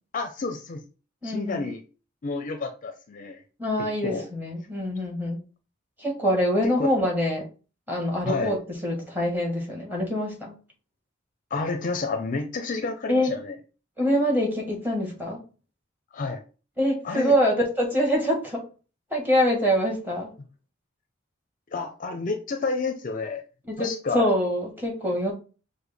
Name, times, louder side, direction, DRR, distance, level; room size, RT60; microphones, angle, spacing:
voice 1, 0.1-0.8 1.2-1.8 2.2-3.4 3.8-4.2 6.8-6.9 8.2-8.5 11.5-13.6 16.1-16.4 17.0-17.3 21.7-23.4 23.8-24.3, left 3 dB, 45° left, 6 dB, 0.5 m, -30 dB
voice 2, 1.2-1.6 3.6-5.4 6.0-7.4 7.9-10.6 13.1-13.3 14.0-15.4 16.8-18.6 19.1-20.3 23.7-25.3, equal, 10° right, -2 dB, 1.5 m, -25 dB
6.3 x 2.2 x 3.4 m, 0.35 s
head